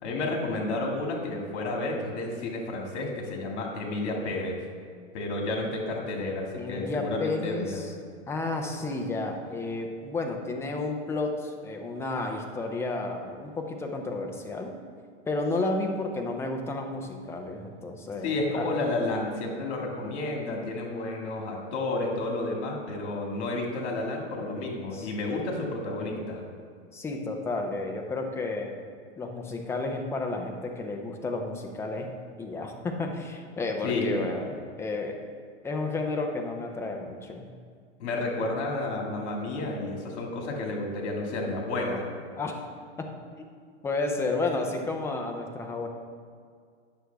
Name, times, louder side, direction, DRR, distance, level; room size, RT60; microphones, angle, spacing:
voice 1, 0.0-4.6 5.1-7.8 18.2-26.4 33.8-34.1 38.0-42.1, left 2 dB, 65° left, 0 dB, 2.0 m, -31 dB
voice 2, 6.6-7.9 8.3-14.8 15.3-18.8 24.9-25.1 26.9-28.8 29.2-32.1 32.4-35.2 35.6-37.5 42.4-42.6 43.0-43.1 43.4-43.5 43.8-45.9, left 3 dB, 5° left, 3 dB, 0.4 m, -32 dB
9.3 x 6.2 x 3.4 m, 2.1 s
hypercardioid pair, 140°, 36 cm